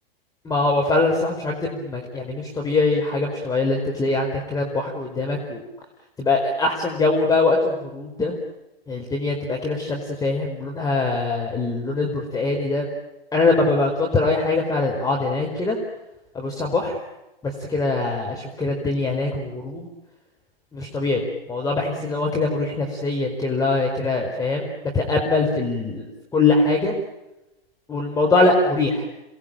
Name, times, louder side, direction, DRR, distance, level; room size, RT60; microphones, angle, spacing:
voice 1, 0.4-5.6 6.2-8.3 8.9-12.9 13.3-15.8 16.3-17.0 17.4-19.9 20.7-26.1 26.3-26.9 27.9-29.0, left 3 dB, 10° left, 1 dB, 4.7 m, -22 dB
28.5 x 20.5 x 9.0 m, 0.96 s
hypercardioid pair, 115°, 30 cm